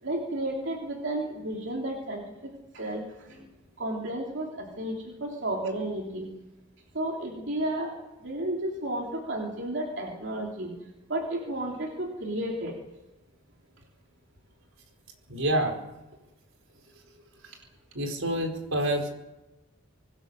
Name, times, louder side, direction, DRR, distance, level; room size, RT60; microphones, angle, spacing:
voice 1, 0.0-3.4 3.8-6.3 6.9-10.7 11.1-12.8, right 1 dB, 60° right, 0 dB, 3.3 m, -32 dB
voice 2, 15.3-15.8 17.4-17.6 17.9-19.1, right 1 dB, 80° right, 3 dB, 4.7 m, -27 dB
25.5 x 19.0 x 6.9 m, 1.0 s
head